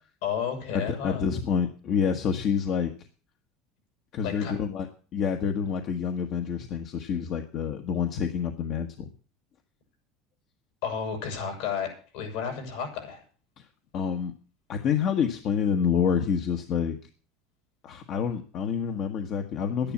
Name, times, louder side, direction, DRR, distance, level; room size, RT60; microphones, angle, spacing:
voice 1, 0.2-1.2 4.2-4.5 10.8-13.2, left 7 dB, 80° left, 3 dB, 7.3 m, -32 dB
voice 2, 0.7-2.9 4.1-4.9 5.1-9.1 13.6-13.7 13.9-14.3 14.7-17.0 17.8-19.9, left 7 dB, 55° left, 4 dB, 1.4 m, -27 dB
11.5 x 10.5 x 7.3 m, 0.40 s
supercardioid pair, 100°, 0 cm